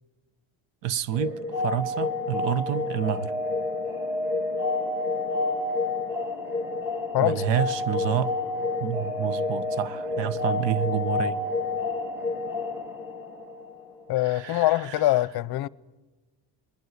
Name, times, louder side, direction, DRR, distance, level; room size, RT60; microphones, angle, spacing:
voice 1, 0.8-1.3 1.6-3.3 7.2-8.3 8.8-11.4 14.2-14.9, right 10 dB, 75° right, 1.1 m, -28 dB
sound 1, 1.1-13.9, left 3 dB, 5° right, 2.4 m, -29 dB
voice 2, 14.1-15.7, left 16 dB, 60° left, 0.7 m, -23 dB
21.0 x 20.0 x 9.5 m
cardioid pair, 175°, 44 cm